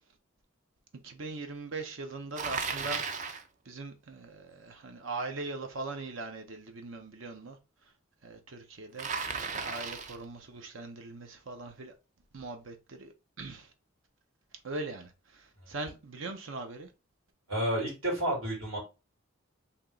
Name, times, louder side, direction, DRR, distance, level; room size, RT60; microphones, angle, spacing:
voice 1, 1.0-7.9 8.2-9.1 9.5-11.9 12.3-13.1 13.4-13.7 14.6-16.9, right 3 dB, 70° right, 0.7 m, -41 dB
Bicycle, 2.3-3.5 9.0-10.2, right 5 dB, 35° right, 0.5 m, -35 dB
voice 2, 17.5-18.8, right 1 dB, 90° right, 2.6 m, -31 dB
3.5 x 2.8 x 3.9 m
head